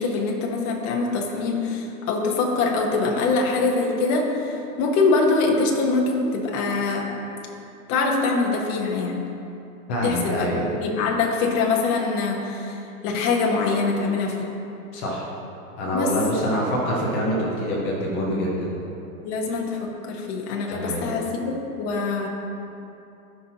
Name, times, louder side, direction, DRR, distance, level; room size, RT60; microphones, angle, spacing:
voice 1, 0.0-7.1 7.9-9.2 10.0-14.5 15.9-16.1 19.2-22.3, left 3 dB, 35° left, 0 dB, 1.2 m, -24 dB
voice 2, 9.9-10.6 14.9-15.3 15.8-18.7 20.7-21.1, equal, 10° left, -4 dB, 0.3 m, -25 dB
13.5 x 5.6 x 2.9 m, 2.8 s
hypercardioid pair, 140°, 45 cm